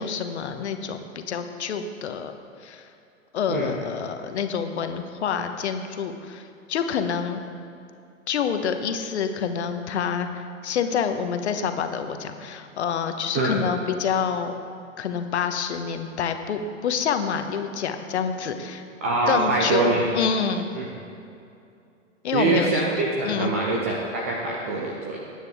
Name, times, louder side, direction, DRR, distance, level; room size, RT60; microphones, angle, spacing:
voice 1, 0.0-2.3 2.6-2.9 3.3-7.5 8.3-14.6 15.0-18.8 19.3-20.7 22.2-22.8 23.2-23.5, left 7 dB, 55° left, 7 dB, 1.1 m, -27 dB
voice 2, 19.0-20.1 20.7-20.9 22.3-25.2, right 2 dB, 10° right, -1 dB, 0.3 m, -24 dB
19.5 x 9.3 x 3.6 m, 2.5 s
figure-of-eight pair, 110°, 40 cm